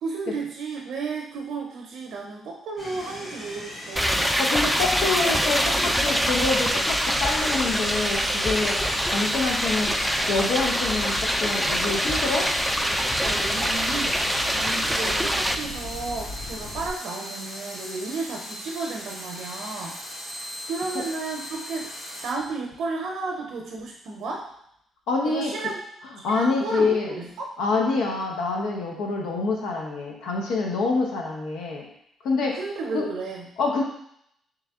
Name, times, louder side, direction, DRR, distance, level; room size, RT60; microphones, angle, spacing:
voice 1, 0.0-4.3 13.2-14.2 14.5-20.3 20.6-24.5 25.2-25.8 26.2-27.5 32.5-33.5, right 3 dB, 75° right, 0 dB, 0.6 m, -33 dB
sound 1, 2.8-22.3, equal, 40° left, 1.4 m, -38 dB
sound 2, 4.0-15.6, equal, ahead, 0.3 m, -24 dB
voice 2, 4.4-8.8 9.0-10.0 10.3-12.5 25.1-25.5 26.2-27.2 27.6-31.9 32.2-32.6 32.9-33.1 33.6-33.8, left 3 dB, 85° left, 0 dB, 0.8 m, -26 dB
sound 3, 4.6-16.9, left 2 dB, 60° left, 0.5 m, -40 dB
3.4 x 3.1 x 3.5 m, 0.73 s
cardioid pair, 90°, 0 cm